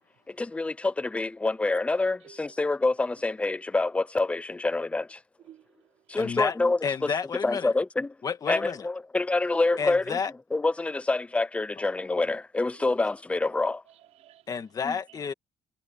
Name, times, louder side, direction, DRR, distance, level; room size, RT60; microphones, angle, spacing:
voice 1, 0.3-5.2 6.1-7.1 7.4-8.1 8.5-10.2 10.5-13.8 14.9-15.0, left 3 dB, 10° left, 0.5 m, -27 dB
voice 2, 5.4-6.0 9.5-9.8 12.7-12.8 13.9-14.5 15.1-15.2, right 12 dB, 65° right, 4.1 m, -53 dB
voice 3, 6.2-6.5 6.8-7.7 8.2-8.9 9.8-10.3 14.5-15.3, left 6 dB, 30° left, 1.8 m, -30 dB
cardioid pair, 165°, 13 cm